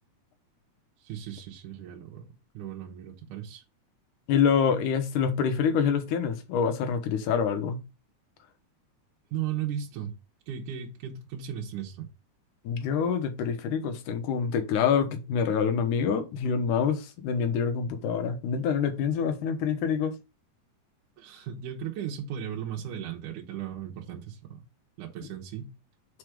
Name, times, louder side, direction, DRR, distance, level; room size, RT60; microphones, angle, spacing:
voice 1, 1.0-2.3 2.5-3.6 9.3-10.1 10.5-12.1 21.2-24.6 25.0-25.7, right 9 dB, 75° right, 2.6 m, -36 dB
voice 2, 4.3-7.8 12.7-20.1, left 7 dB, 75° left, 2.5 m, -26 dB
6.2 x 4.5 x 5.0 m
omnidirectional pair, 3.7 m